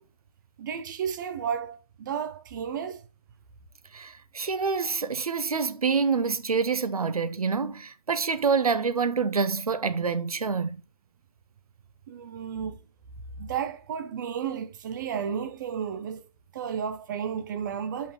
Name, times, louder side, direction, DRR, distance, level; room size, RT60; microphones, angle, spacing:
voice 1, 0.6-3.0 12.1-12.8 13.4-16.2 16.5-18.1, right 7 dB, 35° right, 0.6 m, -32 dB
voice 2, 3.9-10.8, right 5 dB, 75° right, 0.9 m, -27 dB
6.7 x 5.6 x 2.8 m
figure-of-eight pair, 140°, 19 cm